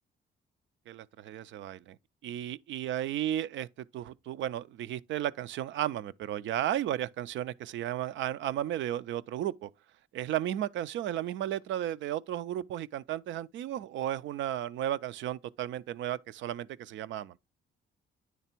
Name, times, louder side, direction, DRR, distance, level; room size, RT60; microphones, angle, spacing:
voice 1, 0.9-2.0 2.2-3.7 3.9-9.7 10.1-17.3, right 12 dB, 75° right, 0.4 m, -34 dB
9.3 x 3.3 x 4.3 m
cardioid pair, 90°, 20 cm